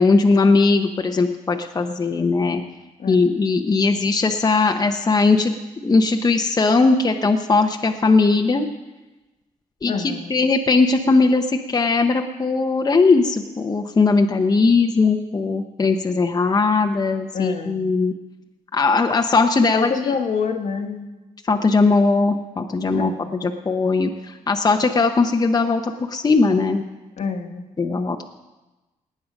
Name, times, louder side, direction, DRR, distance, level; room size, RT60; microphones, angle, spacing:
voice 1, 0.0-2.6 3.1-5.5 5.8-8.7 9.8-18.1 18.7-20.1 21.5-23.1 23.4-26.9 27.8-28.3, left 3 dB, 30° left, 3 dB, 0.9 m, -19 dB
voice 2, 3.0-3.3 9.9-10.4 17.3-17.9 19.7-21.1 22.9-23.3 27.2-27.7, left 5 dB, 55° left, 5 dB, 1.3 m, -27 dB
19.0 x 8.7 x 5.3 m, 1.1 s
cardioid pair, 95°, 14 cm